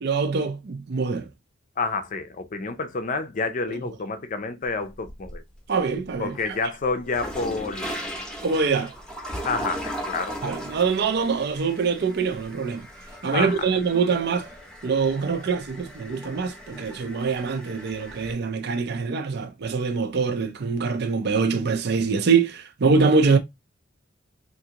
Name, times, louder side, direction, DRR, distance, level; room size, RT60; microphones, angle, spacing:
voice 1, 0.0-1.3 3.7-3.8 5.7-6.6 8.4-8.9 10.4-12.9 13.2-14.5 14.8-23.4, right 5 dB, 55° right, 0.5 m, -24 dB
voice 2, 1.8-5.4 6.2-8.1 9.4-10.4 13.3-13.6, left 4 dB, 45° left, 0.5 m, -29 dB
sound 1, 4.6-5.6 6.0-18.3, equal, 5° left, 0.7 m, -38 dB
3.5 x 2.5 x 2.8 m
head